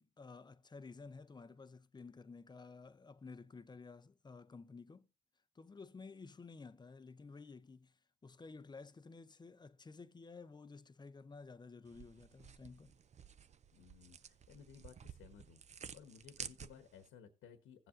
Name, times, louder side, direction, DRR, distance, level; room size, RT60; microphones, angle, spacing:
voice 1, 0.0-5.1 5.5-12.9, left 4 dB, 20° left, 0.6 m, -53 dB
sound 1, 11.9-17.1, right 7 dB, 35° right, 0.5 m, -53 dB
voice 2, 13.7-15.6 15.9-17.9, left 7 dB, 85° left, 1.2 m, -58 dB
16.0 x 7.5 x 2.6 m
cardioid pair, 90°, 20 cm